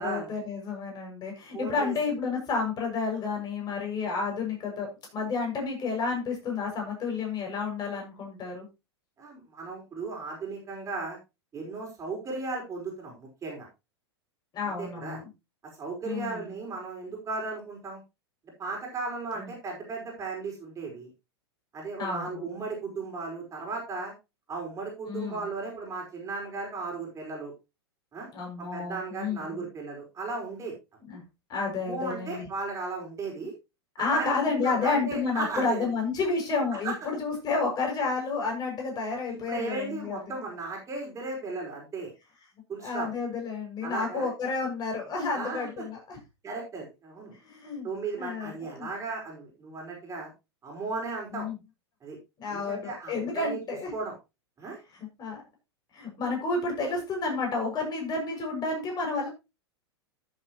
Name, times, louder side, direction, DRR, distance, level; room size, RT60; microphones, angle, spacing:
voice 1, 0.0-8.7 14.5-15.3 16.0-16.5 19.4-19.5 22.0-22.5 25.1-25.5 28.3-29.6 31.0-31.2 31.5-32.5 34.0-40.3 42.8-46.2 47.4-47.9 48.2-48.9 51.3-51.6 52.4-53.9 54.9-55.4 55.9-59.3, left 4 dB, 30° left, 1 dB, 6.5 m, -31 dB
voice 2, 1.5-1.9 9.2-11.2 11.5-13.7 14.8-15.2 15.8-18.0 18.6-21.1 21.7-24.1 24.5-27.5 28.1-28.3 28.6-30.7 31.8-33.5 34.0-35.9 36.8-36.9 39.3-42.1 42.7-43.1 43.8-44.3 45.3-45.9 46.4-47.3 47.8-50.3 50.6-51.5 52.0-52.2 52.5-53.6 53.9-54.1 54.6-54.8, right 3 dB, 20° right, -1 dB, 5.1 m, -36 dB
13.0 x 8.1 x 3.0 m, 0.26 s
hypercardioid pair, 100°, 14 cm